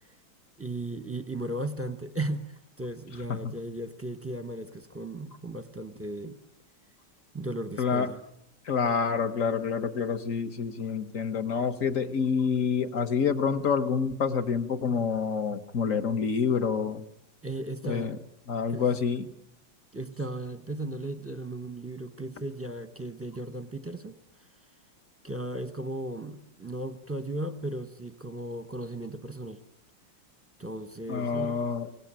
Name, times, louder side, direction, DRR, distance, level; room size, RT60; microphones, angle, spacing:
voice 1, 0.6-6.4 7.3-8.2 17.4-18.1 18.7-18.8 19.9-24.2 25.2-29.6 30.6-31.7, right 1 dB, 10° right, 10 dB, 0.8 m, -36 dB
voice 2, 7.8-8.1 8.6-17.0 17.8-18.2 18.5-19.3 31.1-31.9, left 6 dB, 45° left, 9 dB, 1.4 m, -27 dB
24.5 x 18.0 x 8.9 m, 0.78 s
omnidirectional pair, 2.2 m